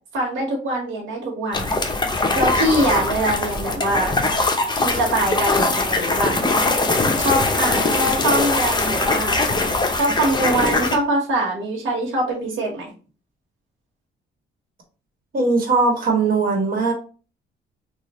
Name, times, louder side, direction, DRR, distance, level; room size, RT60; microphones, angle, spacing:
voice 1, 0.1-1.7 2.3-4.2 4.8-6.4 7.2-9.4 10.0-12.9, right 1 dB, 80° right, -1 dB, 1.2 m, -23 dB
sound 1, 1.5-11.0, left 3 dB, 20° left, 0.7 m, -21 dB
voice 2, 15.3-16.9, right 3 dB, 45° right, 1 dB, 1.4 m, -19 dB
3.1 x 2.4 x 4.1 m, 0.36 s
cardioid pair, 90°, 20 cm